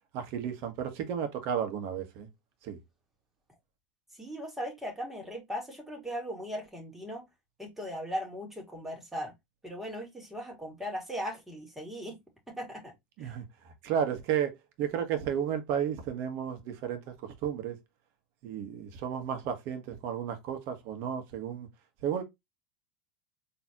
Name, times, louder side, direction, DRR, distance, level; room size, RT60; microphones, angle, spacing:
voice 1, 0.1-2.3 2.6-2.8 13.2-17.8 18.4-21.7 22.0-22.2, right 8 dB, 55° right, 1.4 m, -33 dB
voice 2, 4.1-7.3 7.6-9.3 9.6-12.2 12.5-12.9 13.2-13.3, equal, 5° right, 2.4 m, -38 dB
4.2 x 3.3 x 2.9 m
hypercardioid pair, 105°, 5 cm